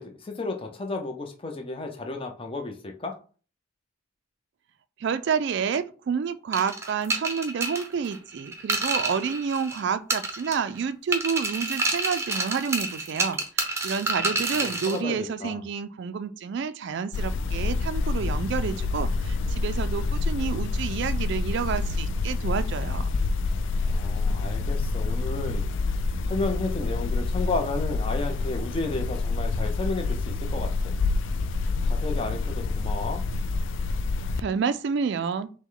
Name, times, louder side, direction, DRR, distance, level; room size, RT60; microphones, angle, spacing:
voice 1, 0.0-3.2 14.2-15.6 23.8-25.7 26.3-30.9 31.8-33.2, left 3 dB, 25° left, 0.6 m, -33 dB
voice 2, 5.0-23.1 34.4-35.5, right 6 dB, 55° right, 0.3 m, -29 dB
sound 1, 6.5-9.8 10.1-10.8 11.1-15.0, right 3 dB, 15° right, 0.6 m, -29 dB
sound 2, 17.1-34.4, left 3 dB, 60° left, 0.3 m, -27 dB
5.9 x 2.2 x 3.7 m
head